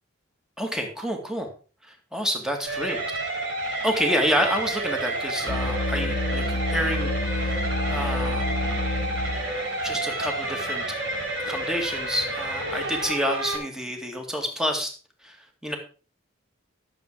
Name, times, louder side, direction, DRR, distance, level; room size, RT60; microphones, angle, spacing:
voice 1, 0.6-1.5 1.9-3.0 3.8-8.6 9.8-10.8 11.4-14.9 15.2-15.4 15.6-15.8, equal, 5° right, 3 dB, 2.3 m, -28 dB
sound 1, 2.7-13.6, right 1 dB, 65° right, 4.4 m, -30 dB
sound 2, 5.5-9.6, left 2 dB, 50° left, 0.8 m, -28 dB
13.0 x 7.4 x 4.8 m, 0.37 s
head